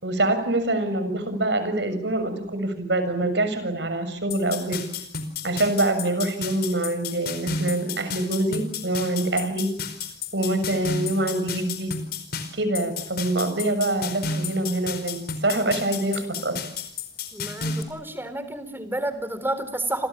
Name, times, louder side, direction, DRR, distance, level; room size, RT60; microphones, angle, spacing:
voice 1, 0.0-4.8 5.4-9.7 10.3-11.9 12.5-16.6, right 2 dB, 75° right, 10 dB, 6.9 m, -25 dB
sound 1, 4.3-17.8, left 5 dB, 60° left, 4.8 m, -32 dB
voice 2, 17.3-20.1, right 1 dB, 15° right, 11 dB, 4.1 m, -30 dB
29.5 x 26.5 x 7.5 m, 0.69 s
head